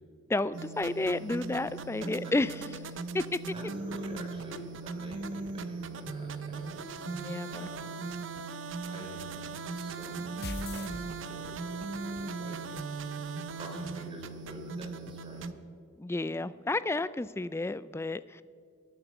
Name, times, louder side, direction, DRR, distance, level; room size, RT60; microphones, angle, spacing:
voice 1, 0.3-2.5 3.1-3.4 7.1-7.7 16.0-18.4, left 2 dB, 15° left, 16 dB, 0.3 m, -31 dB
sound 1, 0.5-15.5, right 4 dB, 70° right, 0.6 m, -39 dB
voice 2, 2.0-2.3 3.5-6.9 7.5-7.9 8.8-12.8 13.5-15.5, equal, 25° right, 0 dB, 3.5 m, -46 dB
sound 2, 10.4-11.7, left 2 dB, 55° left, 0.8 m, -40 dB
20.5 x 9.1 x 6.0 m, 2.2 s
head